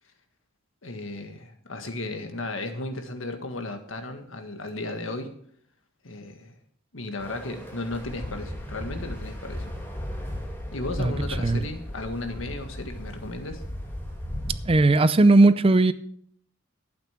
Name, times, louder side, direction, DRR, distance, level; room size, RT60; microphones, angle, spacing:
voice 1, 0.8-5.3 6.0-6.5 6.9-9.7 10.7-13.6, left 2 dB, 85° left, 1.8 m, -35 dB
sound 1, 7.2-14.8, equal, 10° left, 2.5 m, -36 dB
voice 2, 14.7-15.9, right 2 dB, 30° right, 0.5 m, -17 dB
11.5 x 8.8 x 5.9 m
head